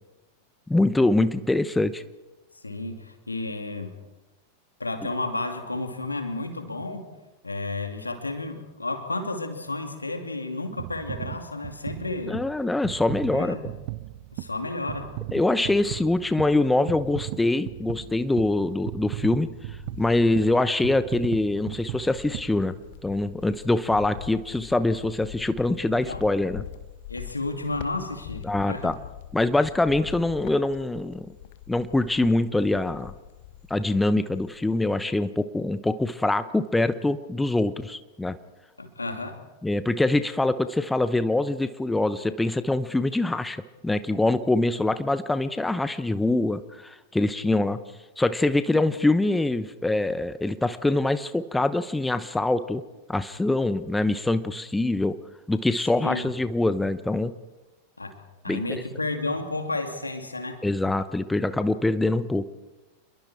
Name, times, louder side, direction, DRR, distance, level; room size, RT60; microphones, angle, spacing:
voice 1, 0.7-2.0 12.3-13.7 15.3-22.7 23.0-26.6 28.4-28.9 29.3-31.3 31.7-33.1 33.7-38.4 39.6-47.8 48.2-52.8 53.1-55.1 55.5-57.3 58.5-58.6 60.6-62.5, left 2 dB, 5° left, 13 dB, 0.9 m, -24 dB
voice 2, 2.6-4.0 4.8-7.1 7.4-12.4 13.3-13.6 14.3-15.1 25.9-26.2 27.1-28.9 38.8-39.4 48.7-48.8 56.0-56.3 58.0-60.6, left 2 dB, 80° left, 6 dB, 2.8 m, -32 dB
sound 1, 10.8-23.2 23.8-23.9, right 19 dB, 50° right, 0.6 m, -37 dB
Cricket, 19.5-20.7 21.2-34.1 34.4-35.0, left 12 dB, 55° left, 1.5 m, -44 dB
29.0 x 22.0 x 4.5 m, 1.1 s
figure-of-eight pair, 90°, 0 cm